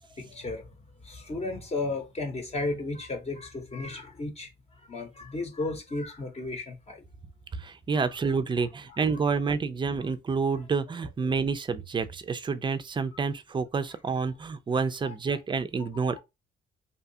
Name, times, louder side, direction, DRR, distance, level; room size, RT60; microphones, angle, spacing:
voice 1, 0.2-0.7 1.0-7.0 7.9-8.1 15.0-15.4 15.8-16.2, left 2 dB, 30° left, 0.8 m, -35 dB
voice 2, 7.5-16.2, right 5 dB, 25° right, 0.4 m, -29 dB
2.7 x 2.4 x 2.7 m
cardioid pair, 90°, 20 cm